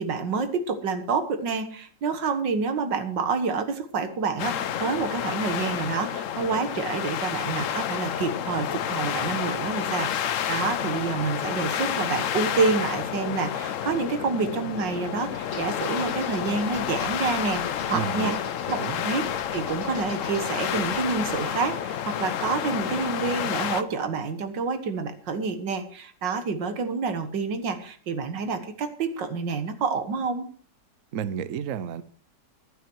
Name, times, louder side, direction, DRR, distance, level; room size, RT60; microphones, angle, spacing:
voice 1, 0.0-17.6 17.9-18.3 18.7-19.2 19.5-30.5, right 4 dB, 90° right, 9 dB, 2.2 m, -28 dB
sound 1, 4.4-23.8, left 9 dB, 60° left, 0.9 m, -30 dB
sound 2, 15.3-21.5, left 4 dB, 40° left, 1.9 m, -42 dB
voice 2, 17.9-18.4 18.8-19.0 31.1-32.0, right 8 dB, 55° right, 15 dB, 1.0 m, -31 dB
14.5 x 11.5 x 4.6 m, 0.43 s
omnidirectional pair, 1.9 m